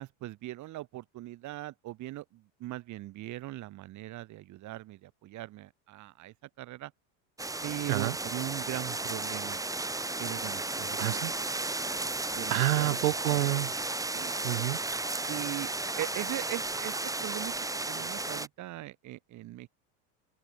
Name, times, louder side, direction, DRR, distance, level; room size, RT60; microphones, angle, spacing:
voice 1, 0.0-6.9 7.6-9.6 10.2-11.0 12.3-13.0 13.3-13.4 14.1-14.4 15.2-15.7 16.0-19.7, right 16 dB, 45° right, 5.5 m, -40 dB
sound 1, 7.4-18.5, right 2 dB, 10° right, 5.4 m, -34 dB
voice 2, 11.0-11.3 12.5-13.7 14.4-14.8, right 17 dB, 85° right, 4.0 m, -28 dB
open air
supercardioid pair, 135°, 42 cm